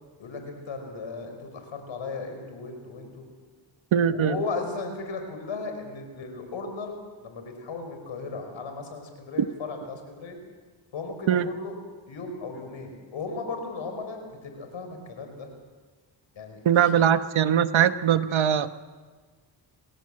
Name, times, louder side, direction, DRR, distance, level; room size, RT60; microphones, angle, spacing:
voice 1, 0.2-3.3 4.1-10.4 10.9-11.8 12.1-15.5 16.3-17.0, left 4 dB, 85° left, 5 dB, 5.0 m, -36 dB
voice 2, 3.9-4.4 11.3-11.5 16.6-18.8, right 9 dB, 85° right, 11 dB, 1.1 m, -21 dB
26.5 x 17.0 x 7.7 m, 1.4 s
cardioid pair, 70°, 46 cm